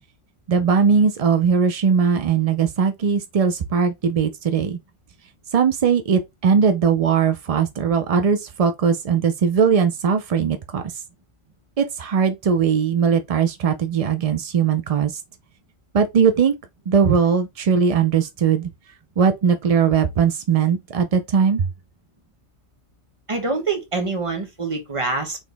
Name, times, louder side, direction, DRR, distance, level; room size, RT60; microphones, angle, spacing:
voice 1, 0.5-4.8 5.5-10.8 11.8-15.2 15.9-16.5 16.9-18.7 19.2-21.7, right 6 dB, 60° right, 0.3 m, -19 dB
voice 2, 23.3-25.4, right 3 dB, 30° right, 1.1 m, -25 dB
4.0 x 3.0 x 3.3 m
omnidirectional pair, 1.2 m